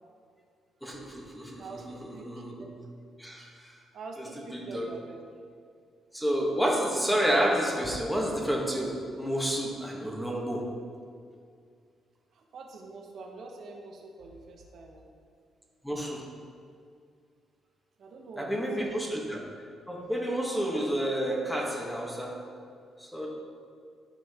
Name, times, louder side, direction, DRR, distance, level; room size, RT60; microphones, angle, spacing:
voice 1, 0.8-2.7 3.2-3.8 4.2-4.3 4.5-4.9 6.1-10.7 15.8-16.3 18.4-19.4 19.9-22.5 23.0-23.3, equal, 5° left, -1 dB, 1.6 m, -30 dB
voice 2, 2.1-2.4 3.9-5.2 12.3-15.0 18.0-18.9, right 3 dB, 65° right, 1 dB, 1.3 m, -45 dB
12.5 x 5.1 x 3.7 m, 2.2 s
cardioid pair, 90°, 0 cm